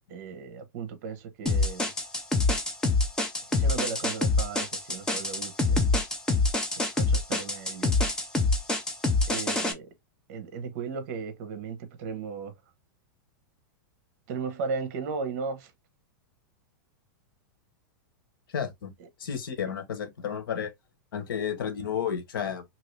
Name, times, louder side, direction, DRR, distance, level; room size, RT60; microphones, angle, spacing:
voice 1, 0.1-1.9 3.5-5.8 6.9-7.9 9.3-9.9 10.3-12.5 14.3-15.7 19.0-19.1, right 5 dB, 45° right, 1.0 m, -36 dB
sound 1, 1.5-9.7, left 2 dB, 5° left, 0.5 m, -25 dB
voice 2, 18.5-18.9 19.2-20.7 21.1-22.6, left 8 dB, 85° left, 1.1 m, -32 dB
2.8 x 2.7 x 3.2 m
supercardioid pair, 165°, 11 cm